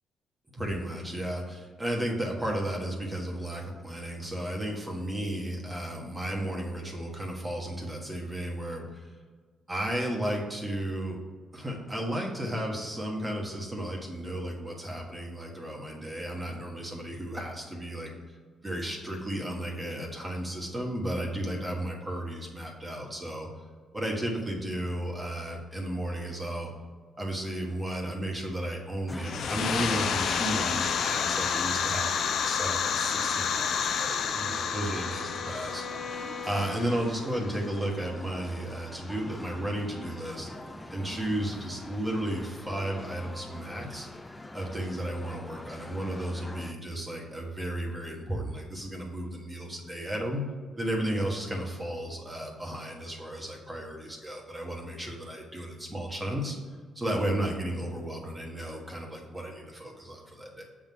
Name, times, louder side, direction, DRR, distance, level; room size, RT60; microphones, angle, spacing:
voice 1, 0.5-9.1 9.7-11.2 11.5-18.1 18.6-23.5 23.9-26.7 27.2-35.8 36.4-40.5 40.9-44.1 44.5-50.5 50.8-56.6 56.9-60.6, right 1 dB, 20° right, -1 dB, 1.6 m, -34 dB
sound 1, 29.1-46.7, left 1 dB, 15° left, 0.5 m, -44 dB
sound 2, 29.2-37.7, left 7 dB, 65° left, 0.5 m, -30 dB
Bowed string instrument, 33.3-37.1, left 4 dB, 45° left, 1.5 m, -43 dB
6.9 x 3.8 x 6.0 m, 1.5 s
cardioid pair, 90°, 0 cm